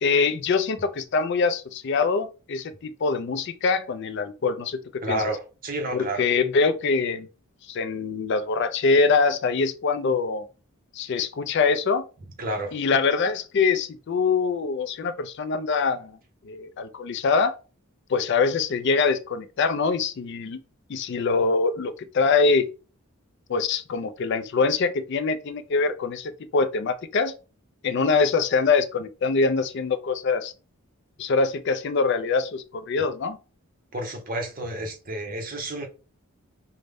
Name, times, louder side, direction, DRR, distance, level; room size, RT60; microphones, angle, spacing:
voice 1, 0.0-5.2 5.9-7.3 7.7-10.4 10.9-12.0 12.7-16.2 16.5-17.5 18.1-20.6 20.9-22.7 23.5-27.3 27.8-30.5 31.2-33.4, left 4 dB, 50° left, 0.3 m, -24 dB
voice 2, 5.0-6.3 12.4-12.8 33.9-35.9, right 1 dB, 40° right, 0.8 m, -30 dB
5.1 x 2.1 x 3.4 m
head